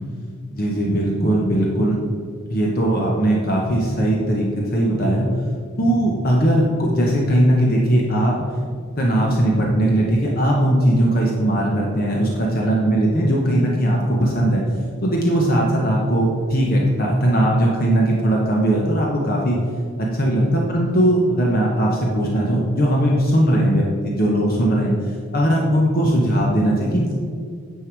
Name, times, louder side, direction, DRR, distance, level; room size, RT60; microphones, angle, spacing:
voice 1, 0.5-2.0 2.5-5.3 5.8-8.4 9.0-14.6 15.0-19.6 20.0-24.9 25.3-27.1, right 1 dB, 45° left, -2 dB, 1.0 m, -19 dB
9.5 x 5.6 x 4.7 m, 2.1 s
head